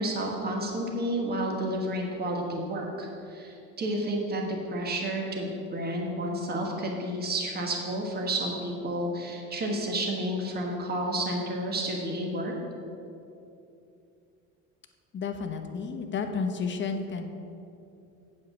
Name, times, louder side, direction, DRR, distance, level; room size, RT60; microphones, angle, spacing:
voice 1, 0.0-12.5, right 1 dB, 25° right, 0 dB, 1.5 m, -31 dB
voice 2, 15.1-17.3, left 5 dB, 35° left, 5 dB, 1.0 m, -31 dB
8.4 x 4.9 x 7.1 m, 2.7 s
supercardioid pair, 110°, 35 cm